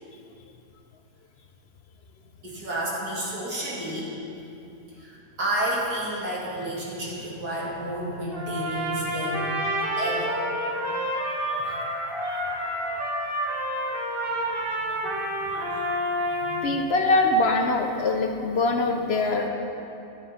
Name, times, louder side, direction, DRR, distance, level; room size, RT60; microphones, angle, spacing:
voice 1, 2.4-4.1 5.0-9.6 10.0-10.4 11.5-11.6 15.0-15.1 15.7-15.8 16.4-16.8, right 1 dB, 65° right, -6 dB, 2.8 m, -31 dB
Trumpet, 8.3-16.7, equal, 35° right, 1.5 m, -29 dB
voice 2, 11.4-11.8 12.2-12.4 15.6-15.7 16.6-19.5, left 2 dB, 65° left, 3 dB, 0.6 m, -24 dB
12.0 x 7.8 x 5.7 m, 2.7 s
omnidirectional pair, 1.8 m